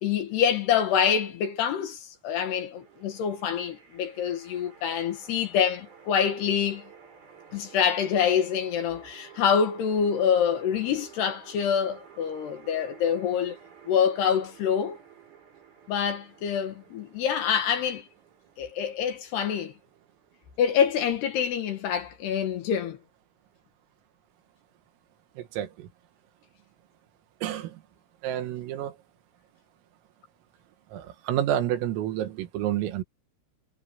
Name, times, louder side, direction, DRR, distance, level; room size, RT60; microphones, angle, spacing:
voice 1, 0.0-6.8 7.5-13.6 13.9-15.0 15.9-18.0 18.6-19.7 20.6-23.0, left 8 dB, 65° left, 3.2 m, -26 dB
sound 1, 2.7-21.7, right 7 dB, 45° right, 8.8 m, -52 dB
voice 2, 25.4-25.9 27.4-27.8 28.2-29.0 30.9-33.0, right 11 dB, 85° right, 4.4 m, -29 dB
omnidirectional pair, 5.9 m